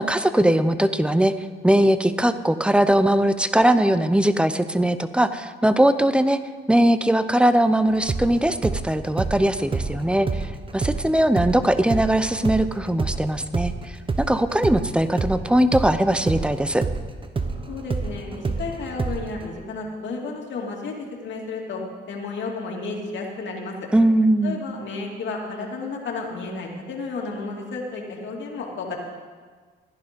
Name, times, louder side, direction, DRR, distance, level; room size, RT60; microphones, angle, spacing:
voice 1, 0.0-1.3 1.6-6.4 6.7-14.0 14.3-16.8 23.9-24.6, right 1 dB, 5° right, 12 dB, 0.7 m, -20 dB
sound 1, 7.9-14.9 15.2-19.4, right 4 dB, 25° right, 1.0 m, -28 dB
voice 2, 17.7-20.9 21.2-21.8 22.1-23.7 24.4-29.0, left 3 dB, 65° left, 0 dB, 2.6 m, -32 dB
15.0 x 10.5 x 5.2 m, 1.5 s
cardioid pair, 90°, 20 cm